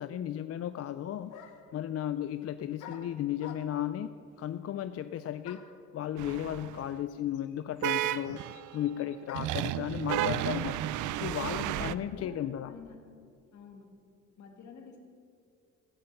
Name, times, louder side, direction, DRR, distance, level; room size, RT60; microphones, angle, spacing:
voice 1, 0.0-1.3 1.7-4.1 4.4-5.7 5.9-8.4 8.7-10.8 11.2-12.7, left 11 dB, 50° left, 12 dB, 0.5 m, -35 dB
sound 1, 0.8-0.9 1.3-1.8 2.8-3.9 5.4-5.8 6.8-6.9 7.1-9.7, left 8 dB, 85° left, 1.1 m, -49 dB
sound 2, 6.2-6.9 7.8-8.8 9.3-11.9, right 13 dB, 80° right, 0.5 m, -32 dB
voice 2, 11.5-13.0 13.5-13.9 14.4-15.0, left 5 dB, 70° left, 3 dB, 1.9 m, -48 dB
15.5 x 5.6 x 7.8 m, 2.3 s
cardioid pair, 90°, 30 cm